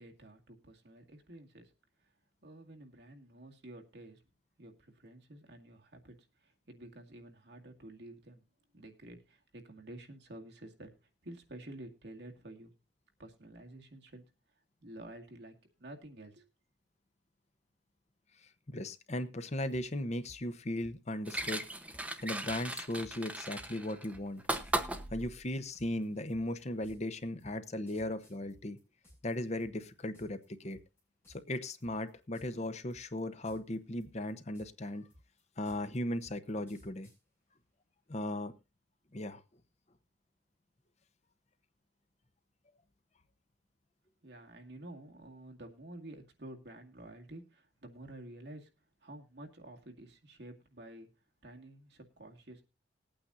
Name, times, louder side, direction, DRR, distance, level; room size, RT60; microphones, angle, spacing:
voice 1, 0.0-1.7 2.4-4.2 4.6-6.2 6.4-8.4 8.7-10.9 11.2-12.7 13.2-14.3 14.8-16.4 44.2-48.7 49.0-51.1 51.4-52.6, right 1 dB, 70° right, 2 dB, 2.2 m, -50 dB
voice 2, 18.7-21.7 22.2-24.4 25.1-28.8 29.2-30.8 31.3-35.1 35.6-37.1 38.1-38.5 39.1-39.4, left 1 dB, 40° left, 11 dB, 0.9 m, -37 dB
sound 1, 19.7-19.8 20.2-20.4 20.8-21.5 21.9-22.0 22.4-22.6 23.0-29.3 29.6-30.4 30.7-31.0 31.2-31.5 31.8-32.6 32.9-33.7 34.0-37.2, equal, 15° left, 6.9 m, -59 dB
sound 2, 21.3-25.4 26.8-26.9, right 1 dB, 10° right, 1.0 m, -37 dB
20.5 x 8.8 x 2.7 m, 0.27 s
head